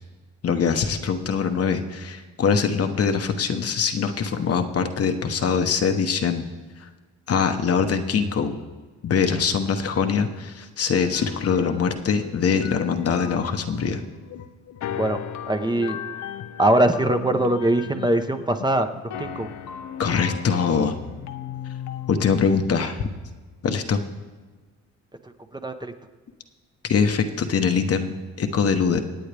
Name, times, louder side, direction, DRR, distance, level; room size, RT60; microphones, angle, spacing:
voice 1, 0.4-6.4 6.8-6.9 7.3-8.5 9.0-14.0 20.0-21.0 22.1-23.1 23.6-24.0 26.8-29.0, left 6 dB, 50° left, 6 dB, 1.1 m, -23 dB
sound 1, 11.1-22.6, left 10 dB, 65° left, 0.7 m, -36 dB
voice 2, 15.5-16.0 16.6-18.9 19.2-19.5 25.6-25.9, right 1 dB, 15° right, 6 dB, 0.9 m, -21 dB
25.5 x 8.7 x 3.4 m, 1.4 s
cardioid pair, 90°, 30 cm